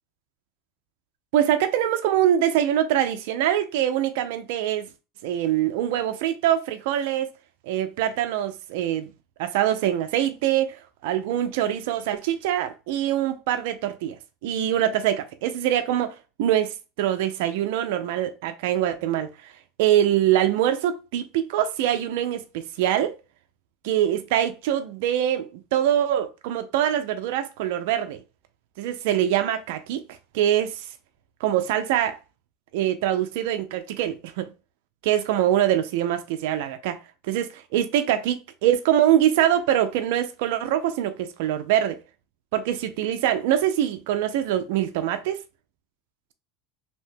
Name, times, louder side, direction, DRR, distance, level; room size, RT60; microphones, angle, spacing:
voice 1, 1.3-4.9 5.2-7.3 7.6-9.1 9.4-14.2 14.4-19.3 19.8-23.2 23.8-28.2 28.8-30.0 30.3-30.9 31.4-32.2 32.7-34.5 35.0-37.0 37.2-42.0 42.5-45.4, right 11 dB, 75° right, 0.3 m, -24 dB
2.7 x 2.1 x 3.3 m
supercardioid pair, 115°, 0 cm